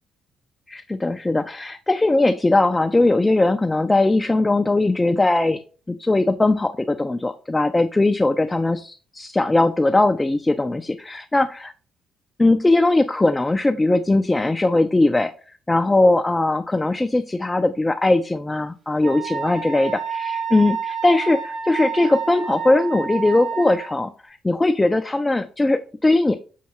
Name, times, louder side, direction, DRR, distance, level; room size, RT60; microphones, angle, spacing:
voice 1, 0.7-5.6 5.9-11.7 12.4-15.3 15.7-26.3, left 2 dB, 15° left, 6 dB, 0.3 m, -20 dB
Wind instrument woodwind instrument, 19.0-23.9, right 6 dB, 45° right, 0.8 m, -29 dB
6.4 x 2.2 x 2.9 m, 0.39 s
cardioid pair, 90°, 0 cm